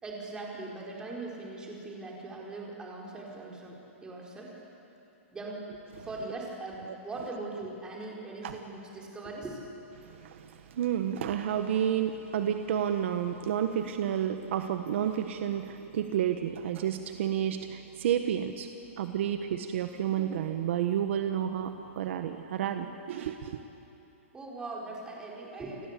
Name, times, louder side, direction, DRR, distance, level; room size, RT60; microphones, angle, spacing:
voice 1, 0.0-4.6 5.3-9.7 24.3-25.9, right 2 dB, 10° right, -2 dB, 4.7 m, -40 dB
voice 2, 10.0-18.7 19.0-23.6, right 9 dB, 60° right, 7 dB, 1.4 m, -30 dB
29.5 x 22.0 x 8.5 m, 2.9 s
hypercardioid pair, 160°, 8 cm